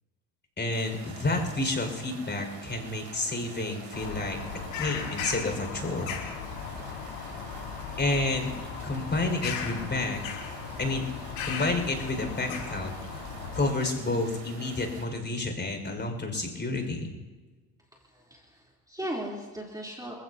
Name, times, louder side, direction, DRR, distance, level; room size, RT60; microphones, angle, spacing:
voice 1, 0.6-6.1 8.0-8.5 8.8-10.2 10.8-11.0 11.4-12.9 13.5-17.1, left 2 dB, 25° left, 3 dB, 5.5 m, -30 dB
sound 1, 0.7-15.1, right 5 dB, 75° right, 6.0 m, -47 dB
Bird vocalization bird call bird song, 3.9-13.7, left 6 dB, 75° left, 4.6 m, -37 dB
voice 2, 17.9-20.1, right 1 dB, 10° right, -3 dB, 3.5 m, -38 dB
29.0 x 16.5 x 2.9 m, 1.3 s
hypercardioid pair, 70°, 44 cm